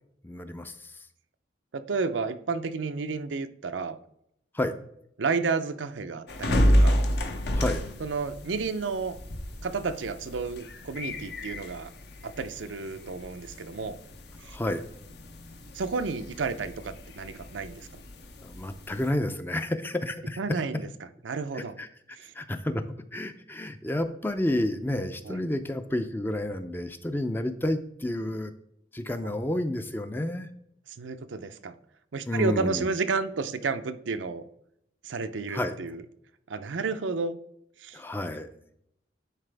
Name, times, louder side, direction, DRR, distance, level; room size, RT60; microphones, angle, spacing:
voice 1, 0.2-1.1 4.5-4.7 7.5-7.8 14.5-14.8 18.4-20.4 21.5-21.9 22.3-22.8 23.1-28.5 28.9-30.5 32.3-32.9 35.5-35.8 37.9-38.5, left 1 dB, 10° left, 9 dB, 0.4 m, -30 dB
voice 2, 1.7-4.0 5.2-7.0 8.0-9.2 9.6-11.9 12.2-14.0 14.4-14.6 15.7-17.9 20.4-20.8 21.2-21.8 22.1-22.3 25.3-25.4 29.2-29.3 31.0-31.7 32.1-34.4 35.0-36.0 36.5-37.4 37.8-38.0, right 4 dB, 90° right, 10 dB, 0.6 m, -31 dB
sound 1, 6.3-19.1, equal, 60° left, 0.8 m, -30 dB
10.0 x 4.1 x 3.4 m, 0.75 s
head